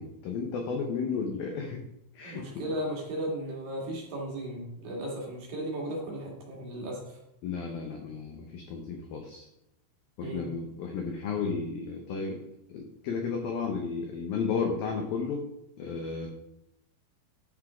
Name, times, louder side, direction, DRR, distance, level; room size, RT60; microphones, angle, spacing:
voice 1, 0.0-1.8 2.2-2.6 7.4-9.5 10.2-12.4 12.7-15.5 15.8-16.3, left 5 dB, 90° left, 2 dB, 2.0 m, -33 dB
voice 2, 2.2-7.2 10.2-10.4, right 1 dB, 55° right, -3 dB, 2.9 m, -35 dB
11.0 x 5.9 x 4.9 m, 0.83 s
omnidirectional pair, 5.7 m